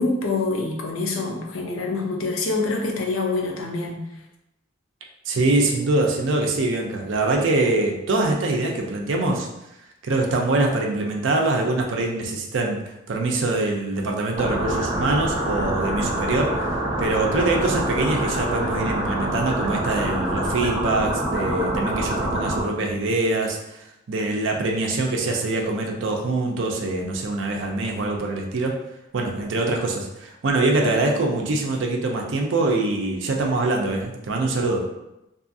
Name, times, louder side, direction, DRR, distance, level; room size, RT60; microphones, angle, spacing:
voice 1, 0.0-4.1, left 3 dB, 80° left, 0 dB, 0.5 m, -25 dB
voice 2, 5.3-9.5 10.0-16.7 17.0-23.6 24.1-28.8 29.1-34.8, right 2 dB, 65° right, 1 dB, 0.5 m, -24 dB
sound 1, 14.4-22.6, right 1 dB, 25° right, 0.8 m, -26 dB
2.6 x 2.4 x 2.6 m, 0.91 s
head